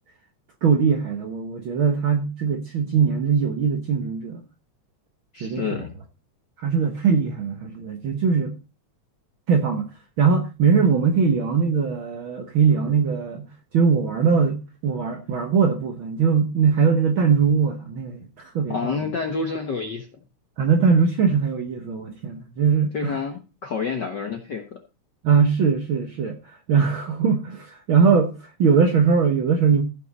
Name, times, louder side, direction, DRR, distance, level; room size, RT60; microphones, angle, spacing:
voice 1, 0.6-4.4 5.4-5.7 6.6-8.5 9.5-9.9 10.2-13.5 13.7-19.0 20.6-23.2 25.2-28.3 28.6-29.8, right 6 dB, 60° right, 1.4 m, -21 dB
voice 2, 5.3-5.9 18.7-20.1 22.9-24.8, left 5 dB, 55° left, 1.2 m, -28 dB
15.5 x 5.9 x 4.0 m
omnidirectional pair, 3.5 m